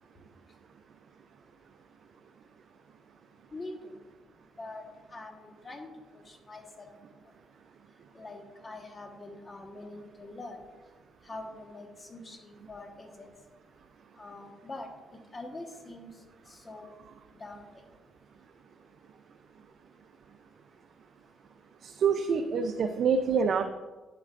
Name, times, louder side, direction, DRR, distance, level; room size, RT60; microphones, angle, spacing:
voice 1, 3.5-4.0 4.6-4.8 5.1-6.9 8.1-10.6 11.2-13.3 14.2-16.9 17.4-17.8 22.8-22.9, left 2 dB, 30° left, 3 dB, 1.3 m, -44 dB
voice 2, 21.8-23.6, right 6 dB, 60° right, 6 dB, 0.5 m, -26 dB
10.0 x 8.5 x 2.5 m, 1.2 s
cardioid pair, 90°, 0 cm